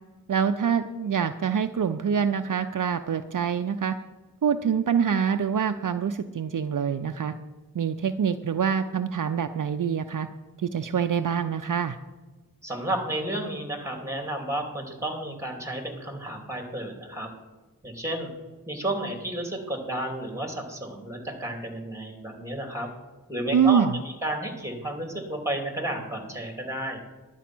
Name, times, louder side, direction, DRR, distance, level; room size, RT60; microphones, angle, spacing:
voice 1, 0.3-4.0 4.4-7.3 7.7-10.3 10.6-12.0 23.5-24.0, right 7 dB, 60° right, 9 dB, 0.5 m, -25 dB
voice 2, 12.6-17.3 17.8-18.3 18.7-22.9 23.3-23.8 24.2-27.0, right 1 dB, 10° right, 3 dB, 2.7 m, -32 dB
11.5 x 8.2 x 6.0 m, 1.2 s
wide cardioid pair, 55°, 36 cm